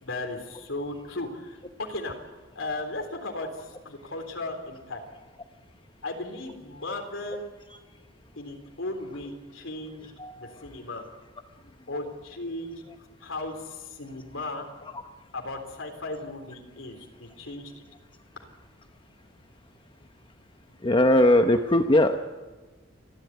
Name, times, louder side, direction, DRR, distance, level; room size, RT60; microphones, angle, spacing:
voice 1, 0.0-2.1 2.6-5.0 6.0-7.5 8.4-10.1 10.4-11.0 11.9-12.8 13.2-14.7 15.3-17.8, left 2 dB, 85° left, 3 dB, 3.7 m, -36 dB
voice 2, 10.2-10.5 20.8-22.2, left 1 dB, 25° left, 6 dB, 0.8 m, -20 dB
29.0 x 11.5 x 9.4 m, 1.2 s
head